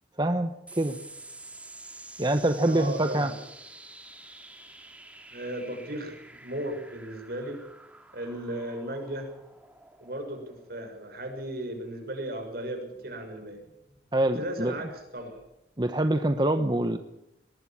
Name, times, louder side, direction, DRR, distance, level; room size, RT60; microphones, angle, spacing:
voice 1, 0.2-0.5 0.8-1.0 2.2-3.3 14.1-14.7 15.8-17.0, right 1 dB, 25° right, 8 dB, 0.9 m, -25 dB
sound 1, 0.7-15.5, right 2 dB, 5° right, 2.8 m, -50 dB
voice 2, 2.6-3.4 5.3-7.6 8.1-9.3 10.0-13.6 14.4-15.4, right 1 dB, 55° right, 5 dB, 6.5 m, -36 dB
22.0 x 19.5 x 7.5 m, 0.82 s
head